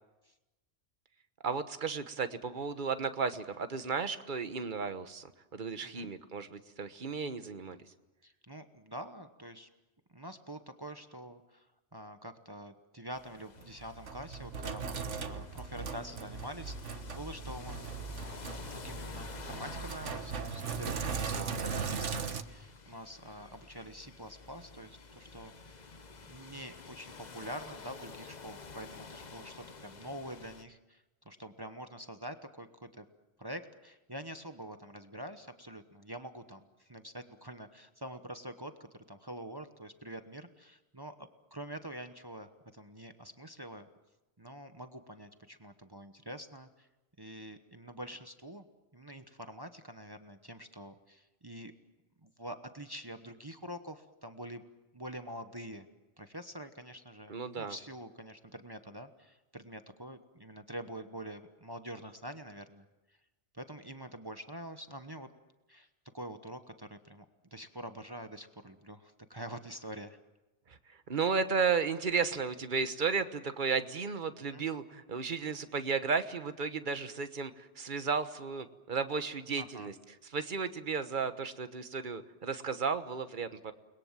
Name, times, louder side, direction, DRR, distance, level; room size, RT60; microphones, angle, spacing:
voice 1, 1.4-5.3 5.5-7.8 21.3-21.6 57.3-57.8 70.7-79.9 80.3-83.7, right 5 dB, 45° right, 10 dB, 1.3 m, -34 dB
voice 2, 8.2-9.7 10.1-11.7 11.9-17.8 18.7-25.8 26.2-33.0 33.4-43.9 44.4-46.9 47.2-48.6 48.9-51.7 52.2-54.6 54.9-55.9 56.2-62.8 63.5-65.3 65.7-65.9 66.1-67.2 67.5-70.2 74.5-74.6 79.6-79.9, equal, 20° right, 8 dB, 1.1 m, -46 dB
sound 1, 13.1-30.6, left 4 dB, 40° left, 1.1 m, -50 dB
Sink (filling or washing), 13.6-22.4, right 5 dB, 85° right, 1.6 m, -38 dB
30.0 x 21.5 x 7.4 m, 1.0 s
omnidirectional pair, 1.2 m